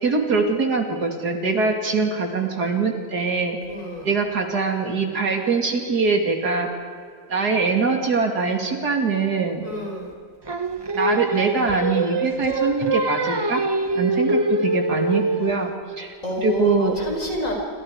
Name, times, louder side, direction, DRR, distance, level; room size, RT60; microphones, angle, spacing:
voice 1, 0.0-3.6 4.0-6.7 7.3-9.6 10.9-13.6 14.0-15.7 16.0-16.9, right 4 dB, 70° right, 3 dB, 3.1 m, -23 dB
voice 2, 3.6-4.1 9.6-10.1 16.2-17.6, left 1 dB, 50° left, 0 dB, 5.5 m, -29 dB
Singing, 10.5-15.7, right 2 dB, 35° right, 0.4 m, -24 dB
28.0 x 26.0 x 5.0 m, 2.2 s
omnidirectional pair, 1.8 m